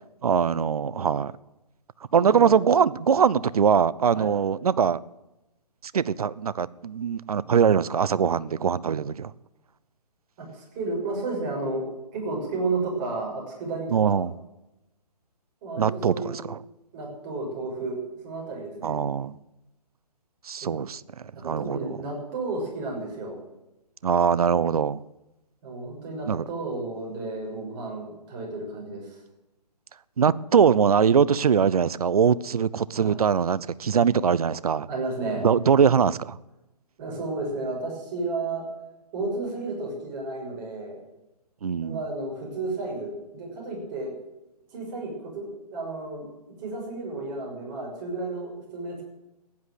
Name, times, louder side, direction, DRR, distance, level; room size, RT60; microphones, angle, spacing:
voice 1, 0.2-1.3 2.1-5.0 5.9-9.3 13.9-14.3 15.8-16.6 18.8-19.4 20.4-21.0 21.4-22.0 24.0-25.0 26.3-26.4 30.2-34.9 35.4-36.4 41.6-42.0, right 7 dB, 60° right, 0.7 m, -22 dB
voice 2, 2.2-2.5 4.1-4.3 10.4-11.9 12.1-14.2 15.6-16.4 16.9-18.0 18.2-19.0 21.3-23.4 25.6-29.2 33.0-33.2 34.9-35.5 37.0-38.6 39.1-41.0 41.8-44.1 44.7-46.3 46.6-49.0, right 3 dB, 30° right, 6.3 m, -32 dB
15.0 x 10.5 x 7.7 m
figure-of-eight pair, 140°, 21 cm